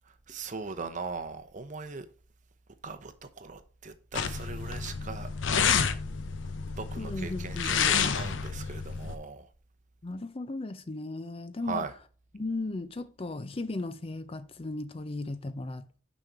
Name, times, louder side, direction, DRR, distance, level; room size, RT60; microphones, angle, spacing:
voice 1, 0.3-2.0 2.8-3.1 3.4-5.3 6.8-9.4 11.7-11.9, right 4 dB, 40° right, 0.9 m, -39 dB
sound 1, 4.1-9.2, left 6 dB, 85° left, 0.7 m, -29 dB
voice 2, 7.0-8.3 10.0-11.9 12.3-16.0, left 2 dB, 30° left, 0.5 m, -36 dB
6.5 x 5.4 x 4.5 m
head